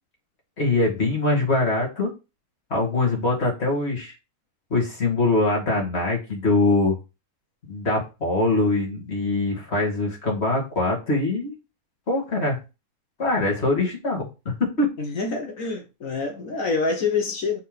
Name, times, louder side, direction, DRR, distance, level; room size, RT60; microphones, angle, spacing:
voice 1, 0.6-2.1 2.7-4.1 4.7-7.0 7.7-11.5 12.1-12.6 13.2-14.3 14.6-14.9, left 2 dB, 40° left, 2.6 m, -23 dB
voice 2, 15.0-17.6, left 4 dB, 60° left, 1.2 m, -26 dB
6.6 x 3.7 x 5.2 m
omnidirectional pair, 1.7 m